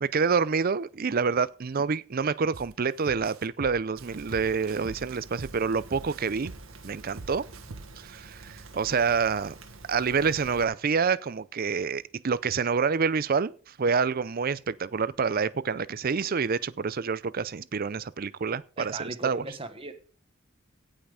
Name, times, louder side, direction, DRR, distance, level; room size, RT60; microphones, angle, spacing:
voice 1, 0.0-6.5 6.8-7.5 8.0-9.5 9.9-13.5 13.8-19.4, right 5 dB, 45° right, 0.5 m, -27 dB
sound 1, 2.5-2.7 3.1-5.6 5.9-8.1, right 3 dB, 80° right, 1.0 m, -42 dB
Rain, 4.0-10.6, right 3 dB, 65° right, 1.6 m, -47 dB
voice 2, 18.8-19.9, right 2 dB, 25° right, 1.3 m, -37 dB
17.0 x 5.7 x 5.0 m
head